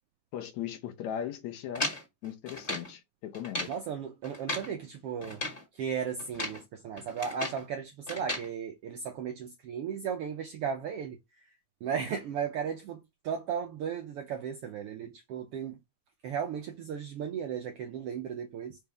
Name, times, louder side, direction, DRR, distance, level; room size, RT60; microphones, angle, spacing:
voice 1, 0.3-1.9 2.2-3.7, left 10 dB, 70° left, 2.1 m, -38 dB
sound 1, 1.7-2.9 3.3-3.8 4.2-4.7 5.2-5.6 6.2-6.6 7.0-7.6 8.1-8.5, left 1 dB, 20° left, 1.8 m, -36 dB
voice 2, 3.7-5.4 5.7-11.5 11.8-15.8 16.2-18.8, right 7 dB, 80° right, 1.3 m, -35 dB
5.4 x 5.2 x 3.5 m
omnidirectional pair, 3.5 m